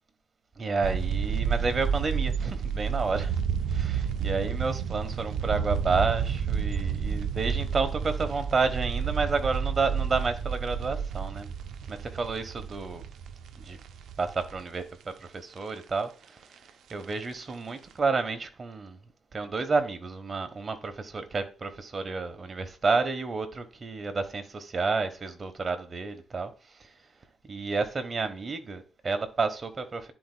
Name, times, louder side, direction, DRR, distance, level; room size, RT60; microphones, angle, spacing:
voice 1, 0.6-3.4 3.7-11.5 11.9-13.0 13.6-13.8 14.2-16.5 16.9-19.0 19.3-26.5 26.8-26.9 27.5-30.1, right 4 dB, 35° right, 1.1 m, -30 dB
sound 1, 0.8-14.9 15.3-15.4 15.5-15.8 16.7-17.1 17.5-17.6 17.9-18.0, right 7 dB, 70° right, 0.5 m, -30 dB
10.0 x 4.3 x 2.2 m
cardioid pair, 90°, 0 cm